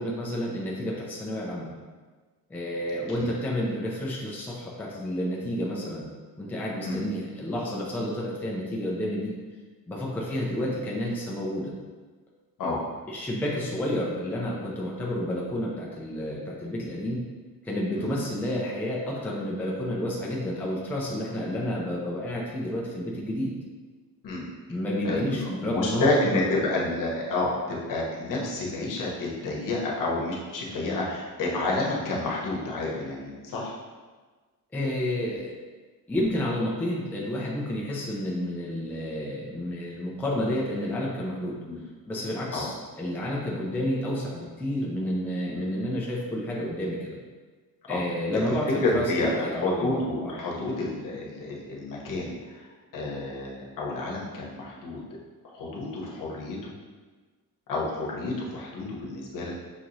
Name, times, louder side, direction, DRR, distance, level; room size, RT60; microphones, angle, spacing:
voice 1, 0.0-1.7 2.5-6.0 6.4-9.3 9.9-11.7 13.1-17.2 17.6-23.5 24.7-26.8 34.7-35.5 36.1-41.6 42.1-47.2 47.9-50.3, left 1 dB, 5° left, -4 dB, 0.5 m, -30 dB
voice 2, 25.0-33.7 41.6-41.8 42.5-42.7 47.9-48.0 48.8-52.7 52.9-55.0 55.5-56.7 57.7-59.5, left 2 dB, 55° left, -3 dB, 1.0 m, -29 dB
6.0 x 2.9 x 2.6 m, 1.4 s
cardioid pair, 140°, 38 cm